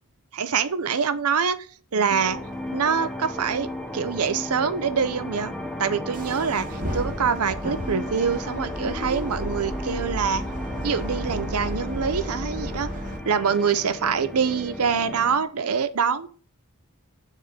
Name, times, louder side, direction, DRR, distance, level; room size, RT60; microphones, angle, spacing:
voice 1, 0.3-1.6 1.9-2.4 2.7-3.7 3.9-5.5 5.8-10.4 10.8-12.9 13.2-16.3, right 6 dB, 75° right, 13 dB, 0.6 m, -25 dB
sound 1, 2.1-15.4, left 1 dB, ahead, 0.9 m, -35 dB
sound 2, 6.1-13.2, equal, 40° right, 1.7 m, -33 dB
6.5 x 3.7 x 5.6 m, 0.42 s
head